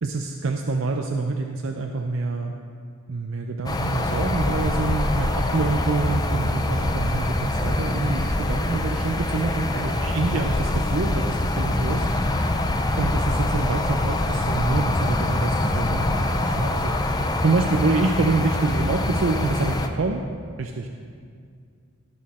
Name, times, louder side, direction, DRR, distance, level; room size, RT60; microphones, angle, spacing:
voice 1, 0.0-2.5 3.1-12.3 13.0-16.9 17.4-20.2 20.6-20.9, right 3 dB, 65° right, 3 dB, 0.6 m, -26 dB
sound 1, 3.7-19.9, left 1 dB, 20° left, 0.5 m, -24 dB
17.5 x 6.3 x 4.2 m, 2.2 s
head